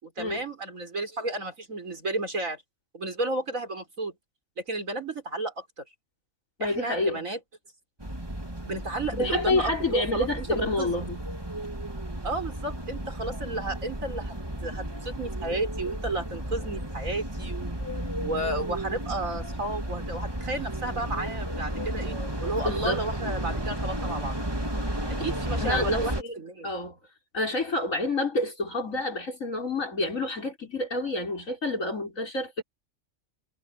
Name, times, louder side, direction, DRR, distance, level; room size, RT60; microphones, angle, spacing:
voice 1, 0.0-2.6 2.9-4.1 4.6-5.7 6.6-7.4 8.7-11.0 12.2-14.4 14.6-17.8 18.2-24.4 25.2-26.7, right 2 dB, 80° right, 5.2 m, -32 dB
voice 2, 6.6-7.2 9.2-11.2 22.6-23.0 25.6-26.4 26.6-27.0 27.3-32.6, left 2 dB, 75° left, 5.8 m, -28 dB
sound 1, 8.0-26.2, right 1 dB, 20° right, 2.5 m, -33 dB
omnidirectional pair, 1.4 m